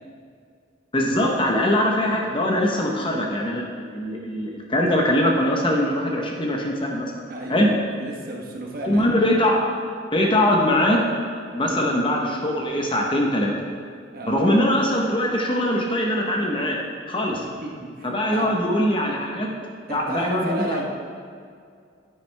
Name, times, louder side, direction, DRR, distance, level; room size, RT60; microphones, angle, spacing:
voice 1, 0.9-3.6 3.9-7.1 7.5-7.7 8.8-9.6 10.1-11.0 11.5-13.5 14.3-16.8 17.1-17.4 18.0-19.5 19.9-20.8, left 1 dB, 25° left, 0 dB, 1.0 m, -22 dB
voice 2, 7.3-9.1 11.6-11.9 14.1-14.5 17.6-18.5 19.9-20.8, right 1 dB, 50° right, -1 dB, 1.2 m, -33 dB
10.0 x 9.1 x 3.4 m, 2.2 s
head